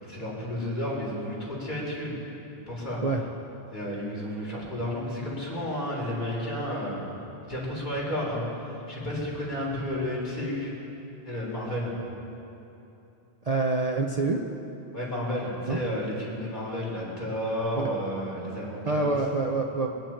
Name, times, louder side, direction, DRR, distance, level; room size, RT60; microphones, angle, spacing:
voice 1, 0.0-2.1 2.7-3.0 3.7-7.0 7.5-10.7 11.2-11.9 14.9-19.2, left 1 dB, 45° left, -5 dB, 3.9 m, -32 dB
voice 2, 13.5-14.4 15.7-15.8 17.8-17.9 18.9-19.9, right 3 dB, 40° right, 1 dB, 0.7 m, -26 dB
24.0 x 9.3 x 4.5 m, 2.9 s
omnidirectional pair, 1.1 m